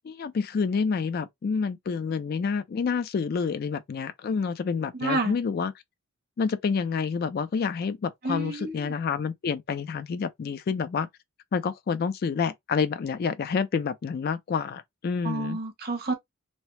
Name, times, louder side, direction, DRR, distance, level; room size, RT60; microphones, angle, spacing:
voice 1, 0.0-5.7 6.4-11.1 11.5-15.6, left 5 dB, 45° left, 0.3 m, -28 dB
voice 2, 4.9-5.4 8.2-8.9 15.2-16.1, right 2 dB, 45° right, 0.8 m, -29 dB
2.8 x 2.0 x 3.1 m
head